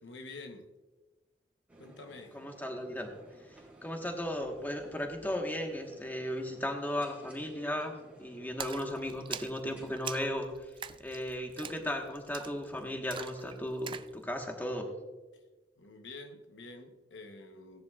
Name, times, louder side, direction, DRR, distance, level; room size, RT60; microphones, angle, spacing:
voice 1, 0.0-0.7 1.8-2.4 15.3-15.4 15.8-17.8, left 3 dB, 75° left, 1.0 m, -48 dB
sound 1, 1.7-9.9, right 2 dB, 10° right, 2.5 m, -56 dB
voice 2, 2.3-3.1 3.5-10.7 11.0-14.9, left 1 dB, 10° left, 1.3 m, -36 dB
Splash splatter, 8.6-14.1, right 7 dB, 30° right, 0.3 m, -44 dB
17.0 x 10.0 x 2.4 m
head